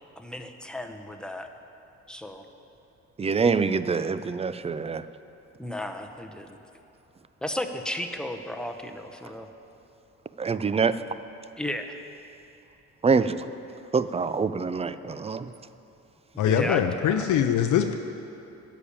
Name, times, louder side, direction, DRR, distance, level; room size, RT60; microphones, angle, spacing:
voice 1, 0.2-1.5 2.1-2.4 5.6-6.6 7.4-9.5 11.6-12.0 16.3-17.4, left 1 dB, 5° left, 5 dB, 0.8 m, -34 dB
voice 2, 3.2-5.0 10.4-10.9 13.0-13.4 13.9-15.5, right 5 dB, 20° right, 13 dB, 0.4 m, -25 dB
voice 3, 16.4-17.9, left 8 dB, 80° left, 5 dB, 0.6 m, -23 dB
9.9 x 7.0 x 8.7 m, 2.8 s
cardioid pair, 90°, 30 cm